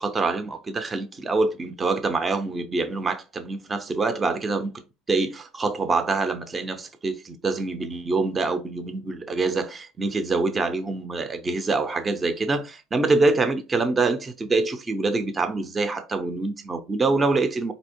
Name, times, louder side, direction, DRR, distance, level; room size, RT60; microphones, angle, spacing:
voice 1, 0.0-4.8 5.1-17.7, right 3 dB, 15° right, 0.5 m, -25 dB
4.1 x 2.8 x 4.3 m
cardioid pair, 175°, 0 cm